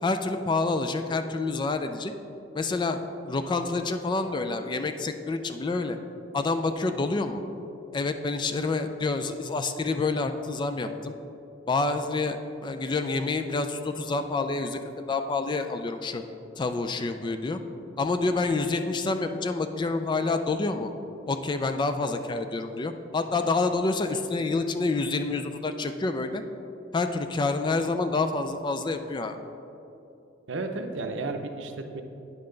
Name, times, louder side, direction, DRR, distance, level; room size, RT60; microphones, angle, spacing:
voice 1, 0.0-2.1 2.5-3.0 3.3-6.0 6.3-7.4 7.9-11.1 11.7-14.8 15.1-16.2 16.6-17.6 18.0-20.9 21.3-26.4 26.9-29.4, left 3 dB, 25° left, 8 dB, 0.3 m, -28 dB
voice 2, 30.5-32.0, right 3 dB, 75° right, 6 dB, 0.6 m, -33 dB
9.2 x 5.7 x 3.8 m, 2.8 s
head